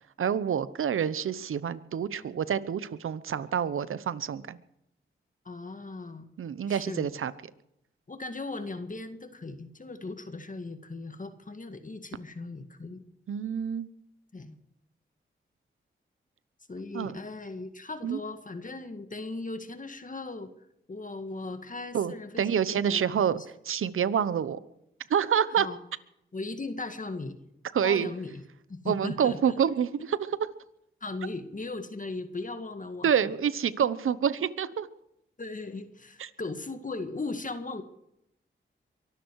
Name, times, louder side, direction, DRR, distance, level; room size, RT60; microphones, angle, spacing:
voice 1, 0.2-4.6 6.4-7.3 13.3-13.9 16.9-17.2 18.0-18.2 21.9-24.6 25.1-25.7 27.7-28.1 28.8-30.2 33.0-34.9 36.2-36.3, right 8 dB, 85° right, 16 dB, 0.9 m, -27 dB
voice 2, 5.5-6.3 6.7-7.1 8.1-13.0 14.3-14.6 16.7-20.5 20.9-23.2 25.5-25.8 26.3-27.4 27.8-28.4 28.7-29.4 31.0-33.1 35.4-37.8, left 3 dB, 40° left, 8 dB, 1.9 m, -38 dB
23.5 x 13.0 x 4.8 m, 0.81 s
cardioid pair, 55°, 21 cm